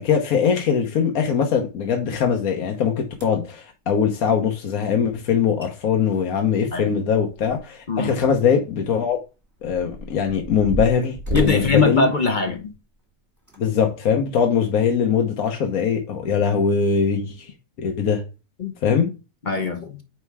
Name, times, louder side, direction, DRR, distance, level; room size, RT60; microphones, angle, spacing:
voice 1, 0.0-9.2 9.6-12.1 13.6-17.5 17.8-18.2 18.8-19.1, left 6 dB, 60° left, 1.3 m, -21 dB
sound 1, 3.1-3.5 5.3-5.4 5.6-5.7 6.0-7.8 8.2-8.3 9.0-12.8 13.4-13.6 14.2-14.3, equal, 10° right, 1.7 m, -33 dB
voice 2, 11.3-12.7 18.6-18.7 19.4-20.0, left 4 dB, 45° left, 0.6 m, -21 dB
8.9 x 3.3 x 4.7 m
omnidirectional pair, 1.9 m